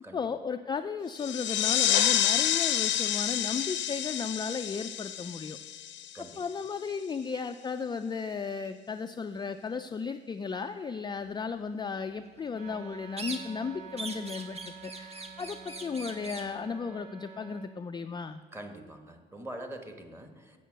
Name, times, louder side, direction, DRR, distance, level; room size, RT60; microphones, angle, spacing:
voice 1, 0.1-5.6 6.4-18.4, left 5 dB, 20° left, 8 dB, 0.3 m, -35 dB
sound 1, 1.1-6.5, left 11 dB, 70° left, 0.6 m, -29 dB
Wind instrument woodwind instrument, 12.5-17.7, right 4 dB, 55° right, 1.7 m, -48 dB
sound 2, 13.2-13.7 14.0-16.5, right 3 dB, 30° right, 1.1 m, -41 dB
voice 2, 18.5-20.6, right 1 dB, 10° right, 5 dB, 1.3 m, -44 dB
7.9 x 6.9 x 6.4 m, 1.4 s
cardioid pair, 90°, 20 cm